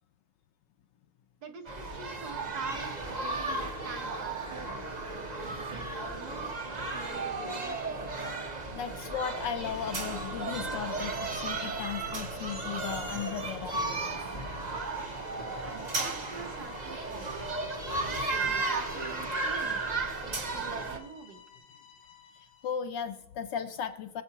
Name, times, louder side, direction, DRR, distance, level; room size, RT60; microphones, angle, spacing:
voice 1, 1.4-5.0 5.6-6.5 6.9-8.0 15.6-17.5 18.3-21.4, right 6 dB, 55° right, 5 dB, 1.3 m, -45 dB
sound 1, 1.7-21.0, right 3 dB, 35° right, 0.7 m, -34 dB
voice 2, 8.5-13.8 22.4-24.2, left 8 dB, 70° left, 9 dB, 1.1 m, -36 dB
sound 2, 9.6-14.6, right 1 dB, 85° right, 3.2 m, -48 dB
sound 3, 12.1-22.9, left 8 dB, 90° left, 1.9 m, -53 dB
21.0 x 7.8 x 2.9 m, 0.99 s
omnidirectional pair, 2.2 m